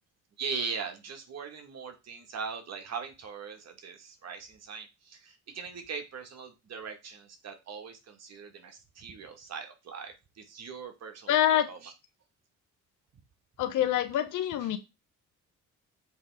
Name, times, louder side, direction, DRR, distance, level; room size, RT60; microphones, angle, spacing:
voice 1, 0.4-11.9, right 5 dB, 60° right, 5 dB, 2.0 m, -40 dB
voice 2, 11.3-11.7 13.6-14.8, left 11 dB, 85° left, 9 dB, 1.2 m, -26 dB
7.6 x 3.5 x 4.9 m, 0.25 s
cardioid pair, 90°, 30 cm